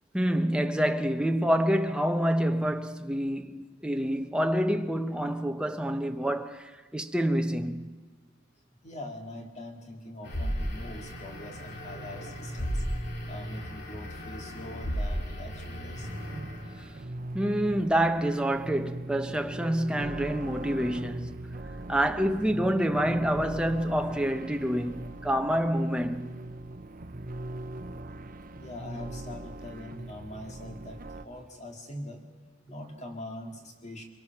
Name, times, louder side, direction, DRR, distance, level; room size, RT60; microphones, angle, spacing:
voice 1, 0.1-8.0 17.3-21.5 21.9-26.4, equal, 5° right, 1.0 m, -27 dB
voice 2, 8.8-12.8 13.3-16.1 28.5-32.2 32.7-34.0, left 1 dB, 35° left, 2.2 m, -43 dB
sound 1, 10.2-17.0, equal, 65° left, 3.1 m, -35 dB
sound 2, 15.9-31.2, right 1 dB, 50° right, 1.0 m, -40 dB
25.0 x 23.5 x 6.0 m
head